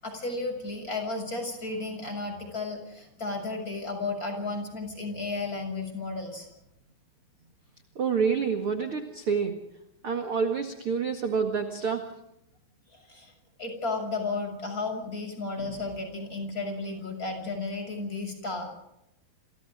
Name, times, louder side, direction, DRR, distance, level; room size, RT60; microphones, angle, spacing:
voice 1, 0.0-6.5 12.9-13.3 13.6-18.7, left 3 dB, 20° left, 4 dB, 7.1 m, -33 dB
voice 2, 8.0-9.6 10.0-12.0, right 6 dB, 45° right, 4 dB, 2.0 m, -27 dB
29.5 x 29.0 x 3.7 m, 0.83 s
omnidirectional pair, 5.1 m